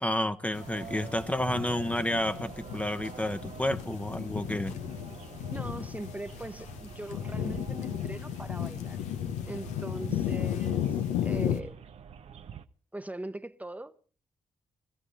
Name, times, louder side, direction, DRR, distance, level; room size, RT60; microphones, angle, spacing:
voice 1, 0.0-4.8, left 1 dB, 10° left, 0.9 m, -30 dB
sound 1, 0.5-11.6, left 10 dB, 85° left, 0.9 m, -34 dB
sound 2, 0.6-12.6, right 8 dB, 65° right, 0.8 m, -46 dB
voice 2, 5.5-9.0 9.5-10.8 11.2-11.8 12.9-14.0, right 1 dB, 15° right, 0.9 m, -40 dB
22.0 x 15.0 x 4.0 m
hypercardioid pair, 45°, 12 cm